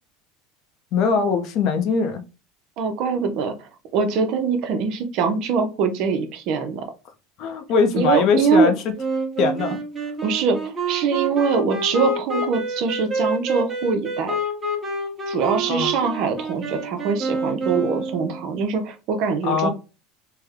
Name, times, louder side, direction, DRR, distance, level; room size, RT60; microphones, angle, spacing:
voice 1, 0.9-2.2 7.4-8.9 9.4-9.8 15.7-15.9 19.4-19.7, left 5 dB, 55° left, 0.6 m, -21 dB
voice 2, 2.8-6.8 7.9-8.7 10.2-14.4 15.3-19.7, right 5 dB, 55° right, 0.7 m, -23 dB
Wind instrument woodwind instrument, 9.0-18.4, right 2 dB, 15° right, 1.1 m, -27 dB
3.3 x 2.1 x 3.5 m
supercardioid pair, 130°, 0 cm